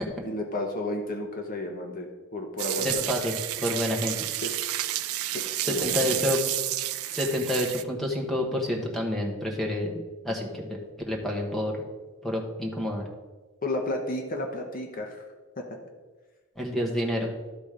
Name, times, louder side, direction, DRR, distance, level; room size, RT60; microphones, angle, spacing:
voice 1, 0.2-3.1 4.4-4.9 5.3-6.2 13.6-15.2 15.6-15.7, left 1 dB, 40° left, 2 dB, 1.0 m, -32 dB
sound 1, 2.6-7.8, right 14 dB, 75° right, 0.4 m, -30 dB
voice 2, 2.8-4.1 5.7-6.4 7.1-9.9 10.2-10.8 11.1-11.8 12.2-13.1 16.6-17.3, left 1 dB, ahead, 0 dB, 1.2 m, -28 dB
12.0 x 4.1 x 5.0 m, 1.3 s
head